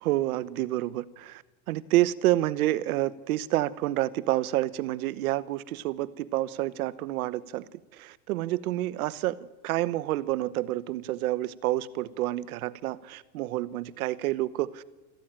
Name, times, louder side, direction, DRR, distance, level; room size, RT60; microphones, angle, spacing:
voice 1, 0.0-1.4 1.7-7.7 8.0-9.4 9.6-14.8, right 16 dB, 75° right, 16 dB, 1.1 m, -28 dB
25.5 x 14.5 x 8.8 m, 1.2 s
supercardioid pair, 175°, 44 cm